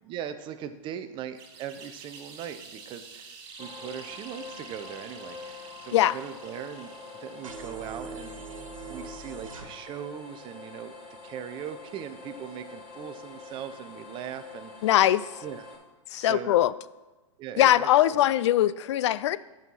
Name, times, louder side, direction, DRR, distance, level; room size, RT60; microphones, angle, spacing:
voice 1, 0.0-6.9 7.2-8.5 8.9-11.0 11.2-14.7 15.4-15.7 16.1-16.7 17.4-18.2, right 9 dB, 30° right, 10 dB, 0.7 m, -40 dB
sound 1, 1.3-7.7, right 5 dB, 45° right, 2.9 m, -48 dB
sound 2, 3.6-15.8, left 4 dB, 35° left, 2.3 m, -45 dB
sound 3, 7.4-9.6, right 4 dB, 80° right, 1.6 m, -41 dB
voice 2, 14.8-15.3 16.1-16.7 17.6-19.4, left 13 dB, 60° left, 17 dB, 0.4 m, -21 dB
9.0 x 5.7 x 6.2 m, 1.2 s
hypercardioid pair, 125°, 17 cm